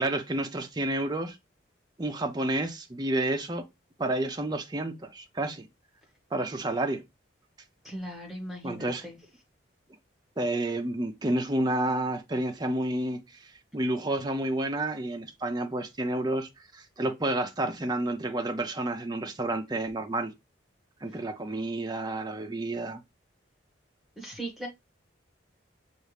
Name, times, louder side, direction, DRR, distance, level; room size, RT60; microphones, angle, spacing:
voice 1, 0.0-1.4 2.0-3.7 4.0-5.7 6.3-7.0 8.6-9.0 10.4-13.2 13.7-20.3 21.0-23.0, right 1 dB, 20° right, 0.5 m, -30 dB
voice 2, 7.8-9.2 24.2-24.7, right 1 dB, ahead, 1.3 m, -38 dB
6.7 x 2.4 x 3.2 m
head